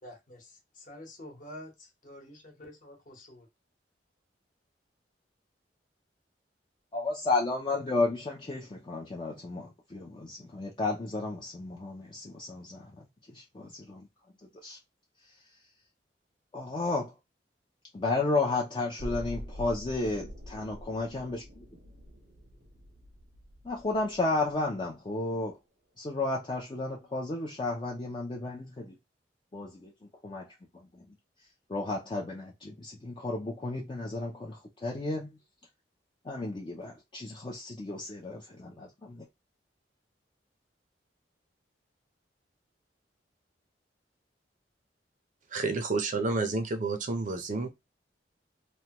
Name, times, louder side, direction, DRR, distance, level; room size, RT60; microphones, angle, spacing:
voice 1, 0.0-3.5, left 1 dB, 50° left, 1.0 m, -48 dB
voice 2, 6.9-13.0 13.3-14.1 14.6-14.8 16.5-17.1 17.9-21.7 23.6-25.6 26.0-28.9 29.5-29.9 30.2-31.1 31.7-35.3 36.2-39.2, left 2 dB, 25° left, 0.4 m, -33 dB
sound 1, 19.0-25.0 25.3-25.4, equal, 75° right, 0.8 m, -45 dB
voice 3, 45.5-47.7, right 3 dB, 45° right, 0.5 m, -30 dB
3.1 x 2.2 x 2.8 m
head